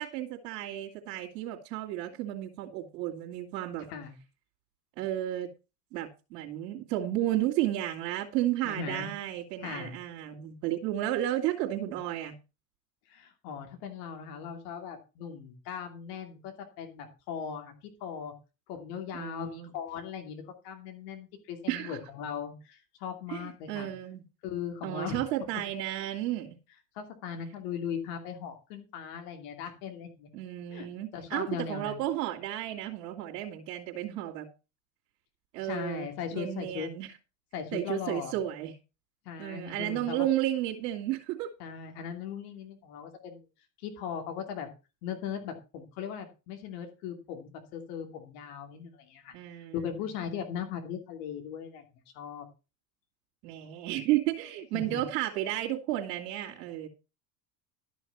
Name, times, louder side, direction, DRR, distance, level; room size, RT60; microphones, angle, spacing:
voice 1, 0.0-3.9 5.0-5.5 5.9-12.4 19.1-19.7 21.7-22.0 23.3-24.3 24.8-26.6 30.3-34.5 35.5-37.1 37.7-38.7 39.4-41.5 49.3-50.0 53.4-56.9, right 13 dB, 75° right, 2.5 m, -33 dB
voice 2, 8.6-9.1 9.6-9.9 13.1-17.7 18.0-18.3 18.7-23.9 24.4-25.2 26.9-30.3 30.7-30.9 31.1-32.0 35.6-36.9 37.5-38.3 39.2-40.3 41.6-43.5 43.8-44.7 45.0-49.3 49.7-51.8 52.1-52.5 54.7-55.0, left 7 dB, 70° left, 2.8 m, -38 dB
12.5 x 6.3 x 5.8 m
hypercardioid pair, 80°, 48 cm